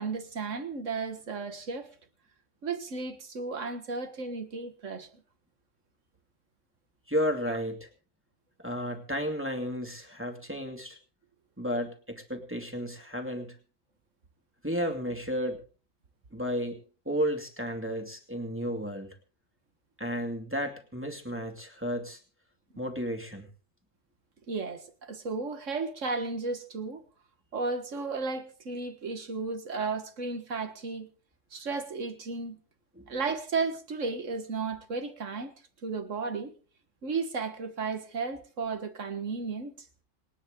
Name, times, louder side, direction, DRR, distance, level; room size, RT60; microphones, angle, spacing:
voice 1, 0.0-1.9 2.6-5.1 7.5-7.6 24.5-27.0 27.5-31.1 31.5-32.6 33.1-35.5 35.8-36.5 37.0-39.7, right 4 dB, 80° right, 2.0 m, -34 dB
voice 2, 7.1-7.9 8.6-11.0 11.6-13.5 14.6-15.6 16.3-16.8 17.1-19.1 20.0-22.2 22.8-23.5 33.0-33.1, equal, 10° right, 2.5 m, -32 dB
27.5 x 9.4 x 3.9 m
omnidirectional pair, 1.3 m